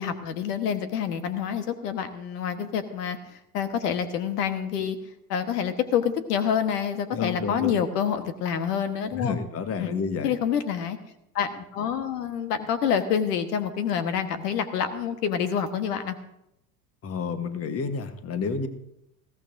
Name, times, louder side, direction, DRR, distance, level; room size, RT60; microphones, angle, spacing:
voice 1, 0.0-5.0 5.3-9.4 9.8-9.9 10.2-11.0 11.3-16.1, left 8 dB, 75° left, 9 dB, 1.4 m, -27 dB
voice 2, 7.1-7.7 9.1-10.4 17.0-18.7, left 5 dB, 30° left, 9 dB, 1.3 m, -30 dB
20.5 x 16.0 x 2.6 m, 0.82 s
hypercardioid pair, 90°, 47 cm